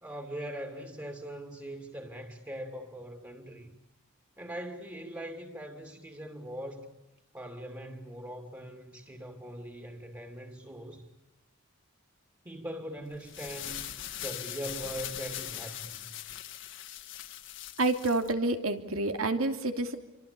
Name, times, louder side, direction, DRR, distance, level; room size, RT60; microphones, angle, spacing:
voice 1, 0.0-3.7 4.4-6.9 7.3-11.1 12.4-13.8 14.2-16.1, equal, 15° right, 2.8 m, -41 dB
sound 1, 13.1-18.3, left 11 dB, 60° left, 2.1 m, -41 dB
voice 2, 17.8-20.0, right 2 dB, 80° right, 3.0 m, -28 dB
28.5 x 25.5 x 6.9 m
head